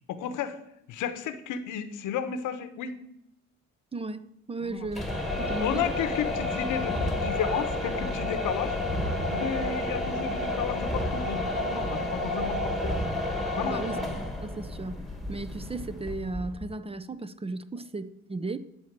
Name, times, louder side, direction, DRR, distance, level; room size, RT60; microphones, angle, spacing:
voice 1, 0.1-0.6 0.9-3.0 4.6-4.9 5.6-8.8 9.3-13.0 13.6-13.9, left 8 dB, 90° left, 1.0 m, -33 dB
voice 2, 3.9-5.1 5.4-5.8 13.6-14.0 14.4-15.0 15.3-18.6, right 3 dB, 20° right, 0.5 m, -35 dB
sound 1, 4.8-16.7, left 1 dB, ahead, 1.6 m, -30 dB
12.5 x 4.4 x 7.4 m
cardioid pair, 90°, 30 cm